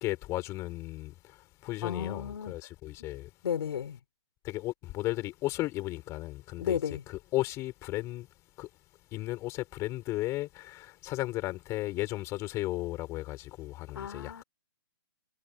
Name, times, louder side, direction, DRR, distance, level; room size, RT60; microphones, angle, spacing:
voice 1, 0.0-3.3 4.4-6.8 7.1-8.3 8.6-8.7 9.1-14.4, left 17 dB, 20° left, 5.3 m, -35 dB
voice 2, 1.8-2.5 3.4-4.0 6.6-7.0 13.9-14.4, left 8 dB, 65° left, 3.9 m, -33 dB
hypercardioid pair, 160°, 14 cm